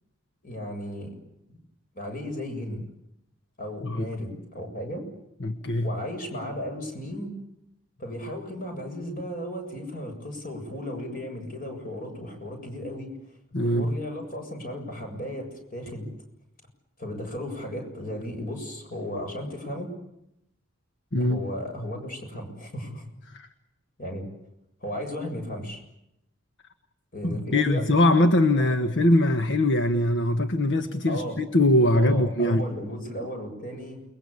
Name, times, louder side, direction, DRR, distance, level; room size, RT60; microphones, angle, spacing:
voice 1, 0.4-1.1 1.5-1.6 1.9-2.9 3.6-5.0 5.8-7.3 8.0-13.2 13.6-16.1 17.0-19.9 21.2-23.1 24.0-24.3 24.8-25.8 27.1-27.9 28.6-28.7 31.1-31.4 31.9-34.0, equal, 45° left, 4 dB, 7.4 m, -35 dB
voice 2, 5.4-5.9 13.5-13.9 21.1-21.4 23.3-23.5 27.2-32.7, left 1 dB, 60° left, 8 dB, 1.5 m, -22 dB
29.5 x 21.5 x 8.5 m, 0.82 s
head